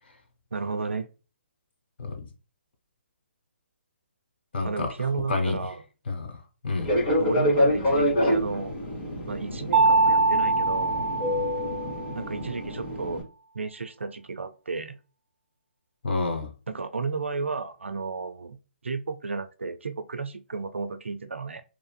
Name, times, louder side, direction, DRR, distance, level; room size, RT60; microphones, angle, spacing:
voice 1, 0.5-1.1 4.6-5.8 7.2-8.7 9.3-11.1 12.1-13.3 13.5-15.0 16.7-18.6 18.8-21.6, right 4 dB, 85° right, 0.4 m, -33 dB
voice 2, 4.5-4.9 5.3-5.6 6.1-7.0 16.0-16.5, left 3 dB, 60° left, 0.9 m, -29 dB
Fixed-wing aircraft airplane, 6.8-13.2, left 1 dB, 25° left, 1.3 m, -27 dB
Mallet percussion, 9.7-12.2, right 3 dB, 15° right, 0.4 m, -23 dB
3.0 x 2.5 x 2.2 m
figure-of-eight pair, 140°, 6 cm